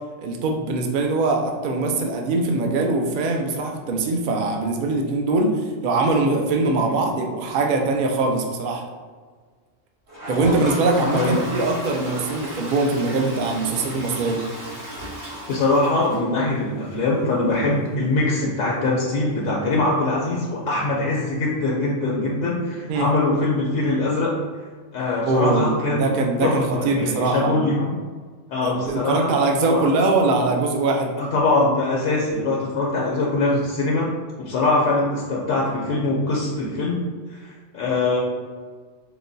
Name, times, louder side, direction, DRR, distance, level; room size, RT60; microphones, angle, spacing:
voice 1, 0.2-8.8 10.3-14.4 22.9-23.1 25.3-27.7 28.6-31.1, right 3 dB, 60° right, 2 dB, 0.5 m, -22 dB
Toilet flush, 10.1-16.8 17.1-17.2 17.4-17.5 17.8-17.9 20.4-20.5 21.8-21.9, equal, 75° right, 1.8 m, -33 dB
voice 2, 15.5-24.3 24.9-26.2 26.4-27.9 28.5-29.3 29.7-29.8 31.2-34.1 34.4-37.0 37.3-38.2, left 2 dB, 75° left, -4 dB, 1.0 m, -22 dB
4.7 x 2.2 x 2.6 m, 1.5 s
omnidirectional pair, 1.3 m